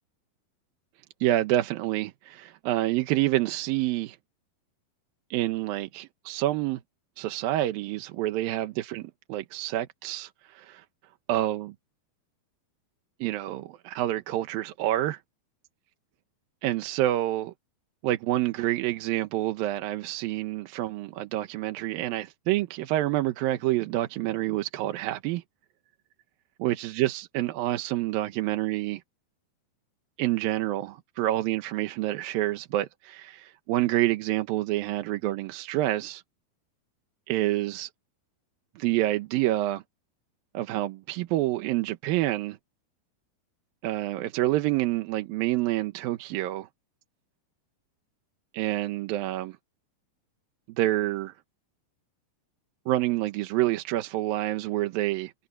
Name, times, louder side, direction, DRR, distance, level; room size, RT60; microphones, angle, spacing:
voice 1, 1.2-4.2 5.3-6.8 7.2-10.9 11.3-11.7 13.2-15.2 16.6-17.5 18.0-25.4 26.6-29.0 30.2-36.2 37.3-37.9 38.8-39.8 40.5-42.6 43.8-46.7 48.5-49.6 50.8-51.3 52.9-55.3, right 15 dB, 75° right, 2.6 m, -28 dB
omnidirectional pair, 4.4 m